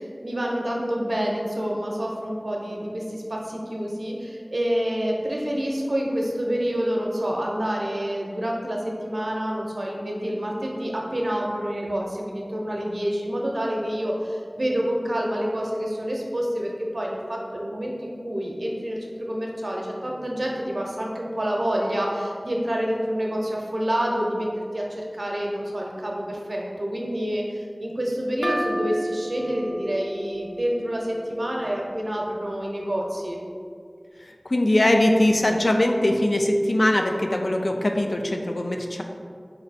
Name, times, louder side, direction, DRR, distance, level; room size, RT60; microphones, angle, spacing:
voice 1, 0.0-24.5 24.7-33.4, equal, 70° right, -1 dB, 0.6 m, -28 dB
sound 1, 28.4-32.0, right 1 dB, 20° right, 0.5 m, -32 dB
voice 2, 34.2-39.0, left 1 dB, 70° left, 3 dB, 0.4 m, -21 dB
4.1 x 2.6 x 4.1 m, 2.2 s
wide cardioid pair, 45°, 0 cm